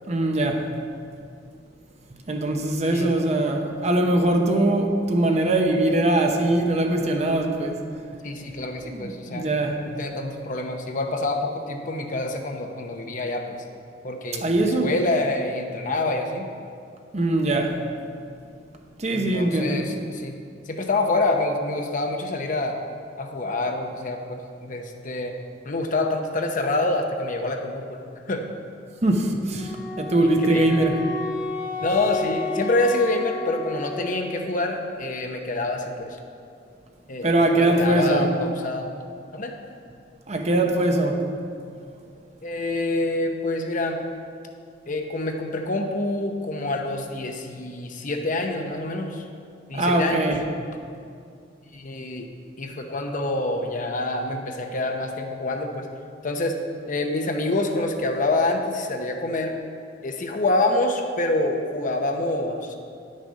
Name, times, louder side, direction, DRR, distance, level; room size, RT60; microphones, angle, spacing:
voice 1, 0.1-0.6 2.3-7.8 8.8-9.8 14.4-14.9 17.1-17.8 19.0-19.8 29.0-31.0 37.2-38.3 40.3-41.2 49.7-50.4, right 2 dB, 40° right, 3 dB, 0.8 m, -22 dB
voice 2, 8.2-9.5 9.8-13.6 14.0-16.5 19.1-20.3 20.7-22.8 23.2-25.3 25.6-28.0 28.3-28.4 30.2-30.8 31.8-36.2 37.1-38.9 39.3-39.5 42.4-44.1 44.9-49.2 49.7-50.3 51.7-52.3 52.6-55.9 56.2-56.6 56.9-59.5 60.0-62.7, left 2 dB, 45° left, 4 dB, 0.8 m, -26 dB
Wind instrument woodwind instrument, 29.6-34.4, left 4 dB, 30° left, 1.7 m, -32 dB
9.9 x 6.5 x 5.2 m, 2.4 s
head